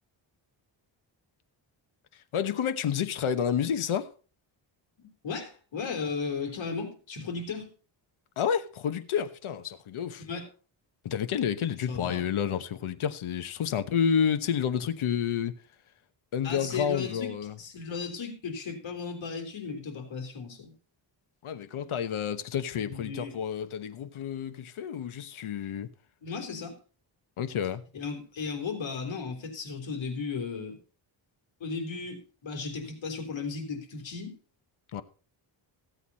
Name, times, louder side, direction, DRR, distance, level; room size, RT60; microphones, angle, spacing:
voice 1, 2.3-4.1 8.4-10.2 11.0-15.5 16.3-17.5 21.4-25.9 27.4-27.8 34.9-35.0, left 8 dB, 80° left, 1.2 m, -29 dB
voice 2, 5.0-7.7 10.2-10.4 11.9-12.3 16.4-20.7 22.8-23.4 26.2-26.8 27.9-30.8 31.6-34.4, left 5 dB, 65° left, 3.7 m, -35 dB
16.0 x 8.3 x 4.1 m
wide cardioid pair, 150°, 48 cm